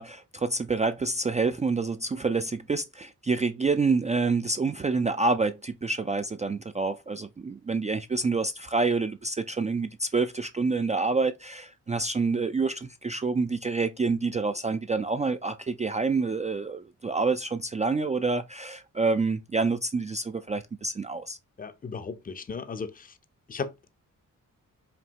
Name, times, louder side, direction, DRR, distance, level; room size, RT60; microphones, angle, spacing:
voice 1, 0.0-21.4, right 4 dB, 20° right, 0.3 m, -27 dB
voice 2, 21.6-23.2 23.5-23.9, left 5 dB, 25° left, 0.6 m, -36 dB
5.2 x 2.7 x 2.8 m
cardioid pair, 75°, 33 cm